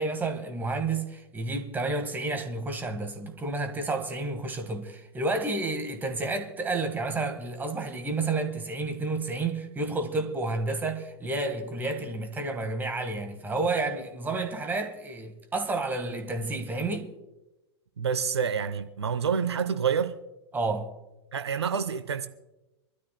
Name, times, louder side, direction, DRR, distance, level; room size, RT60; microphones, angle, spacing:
voice 1, 0.0-17.1 20.5-20.9, right 3 dB, 15° right, 1.6 m, -30 dB
voice 2, 18.0-20.2 21.3-22.3, right 7 dB, 70° right, 0.8 m, -28 dB
26.0 x 12.5 x 2.2 m
figure-of-eight pair, 100°, 14 cm